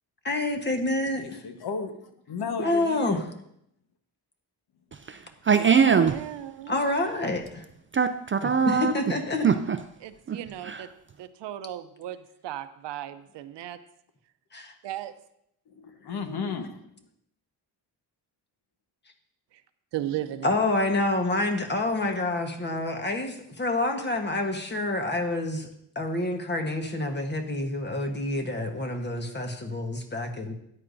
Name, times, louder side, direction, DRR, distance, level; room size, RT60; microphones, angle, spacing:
voice 1, 0.2-1.4 2.6-3.2 6.7-7.6 8.7-9.4 14.5-14.7 20.4-25.7 25.9-30.5, left 2 dB, 25° left, 1.2 m, -27 dB
voice 2, 1.1-3.3 15.7-17.0, left 5 dB, 65° left, 1.2 m, -34 dB
voice 3, 4.9-6.2 7.9-8.9 9.4-9.8 10.3-10.9, right 6 dB, 30° right, 0.4 m, -23 dB
voice 4, 5.7-6.8 10.0-10.9 11.2-13.8 14.8-15.1 19.9-20.6, right 12 dB, 85° right, 0.7 m, -34 dB
13.0 x 9.7 x 2.6 m
cardioid pair, 135°, 41 cm